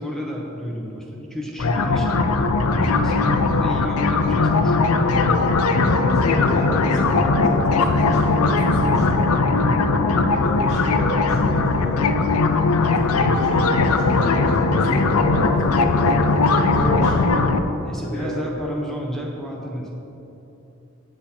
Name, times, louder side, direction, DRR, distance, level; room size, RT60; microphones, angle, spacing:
voice 1, 0.0-5.3 17.8-19.9, equal, ahead, -2 dB, 0.8 m, -31 dB
sound 1, 1.6-17.6, left 3 dB, 85° left, 0.5 m, -19 dB
voice 2, 5.8-9.3 9.8-12.2 12.7-17.3 17.9-18.5, equal, 50° left, -7 dB, 1.9 m, -32 dB
8.3 x 7.9 x 4.3 m, 3.0 s
head